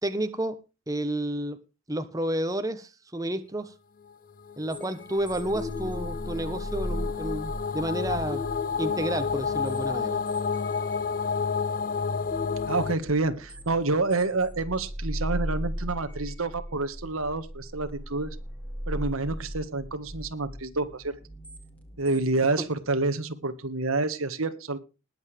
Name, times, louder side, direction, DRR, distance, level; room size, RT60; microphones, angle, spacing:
voice 1, 0.0-1.6 1.9-3.7 4.6-8.4 8.8-10.2 22.6-22.7, right 1 dB, 15° right, 1.1 m, -31 dB
sound 1, 4.5-13.0, left 5 dB, 40° left, 0.6 m, -30 dB
sound 2, 4.7-23.0, equal, 5° left, 2.5 m, -38 dB
voice 2, 12.7-18.3 18.9-21.1 22.0-24.8, right 3 dB, 90° right, 1.7 m, -28 dB
20.5 x 8.2 x 3.3 m
head